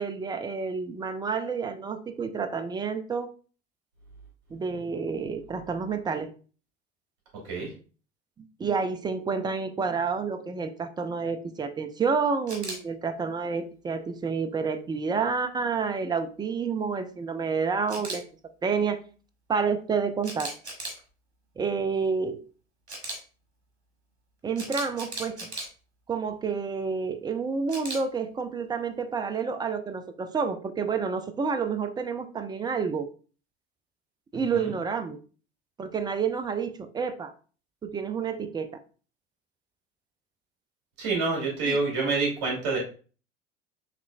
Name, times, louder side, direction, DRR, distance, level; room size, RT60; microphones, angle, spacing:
voice 1, 0.0-3.3 4.5-6.3 8.4-18.2 18.6-19.0 19.5-20.5 21.6-22.4 24.4-25.5 26.1-33.1 34.3-35.2 35.8-37.3 37.8-38.7 41.7-41.8, right 5 dB, 15° right, 9 dB, 0.4 m, -29 dB
Camera, 12.5-12.8 17.9-18.2 20.2-21.0 22.9-23.2 24.6-25.7 27.7-28.0, right 2 dB, 85° right, 1.1 m, -36 dB
voice 2, 34.3-34.7 41.0-42.8, right 3 dB, 55° right, -2 dB, 2.2 m, -27 dB
5.9 x 3.1 x 2.3 m, 0.38 s
figure-of-eight pair, 75°, 32 cm